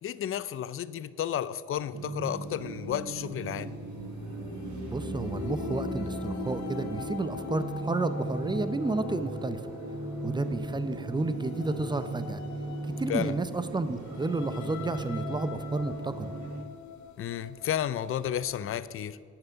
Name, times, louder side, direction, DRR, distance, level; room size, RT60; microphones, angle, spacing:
voice 1, 0.0-3.8 13.1-13.4 17.2-19.2, left 10 dB, 45° left, 0.4 m, -32 dB
sound 1, 1.9-16.6, right 2 dB, 70° right, 1.1 m, -37 dB
sound 2, 2.3-18.8, left 6 dB, 70° left, 0.9 m, -42 dB
voice 2, 4.9-9.7 10.2-12.4 12.9-16.3, right 3 dB, 15° right, 0.5 m, -31 dB
9.1 x 5.9 x 6.9 m
cardioid pair, 90°, 30 cm